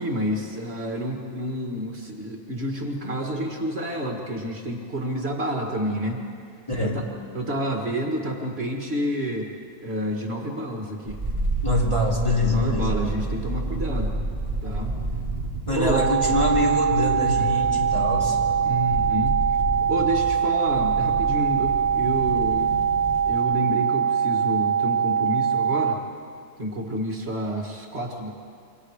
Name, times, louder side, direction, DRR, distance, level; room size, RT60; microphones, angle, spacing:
voice 1, 0.0-6.2 6.8-7.1 7.3-9.5 9.8-11.2 12.5-14.1 14.6-14.9 15.7-16.0 18.6-19.4 19.9-22.8 23.2-26.0 26.6-28.3, right 1 dB, 45° right, 0 dB, 2.2 m, -29 dB
voice 2, 6.7-7.0 11.6-12.9 15.7-18.4, left 1 dB, 20° left, -4 dB, 3.1 m, -24 dB
sound 1, 11.1-23.5 23.7-23.8, right 2 dB, 20° right, 3.6 m, -30 dB
sound 2, 15.9-25.9, right 7 dB, 80° right, 1.3 m, -23 dB
27.5 x 24.5 x 5.0 m, 2.3 s
omnidirectional pair, 1.5 m